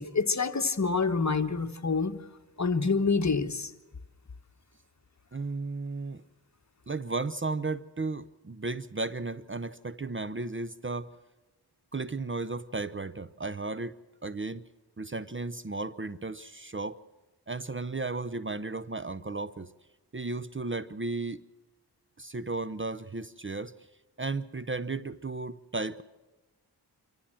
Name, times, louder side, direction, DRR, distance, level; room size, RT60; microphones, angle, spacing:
voice 1, 0.0-2.1 2.6-3.7, left 4 dB, 40° left, 9 dB, 1.3 m, -27 dB
voice 2, 5.3-6.2 6.9-11.1 11.9-14.0 14.2-14.6 15.0-17.0 17.5-19.7 20.1-21.4 22.2-23.7 24.2-26.0, right 3 dB, 30° right, 16 dB, 0.7 m, -34 dB
25.5 x 14.5 x 7.6 m, 1.2 s
cardioid pair, 50°, 41 cm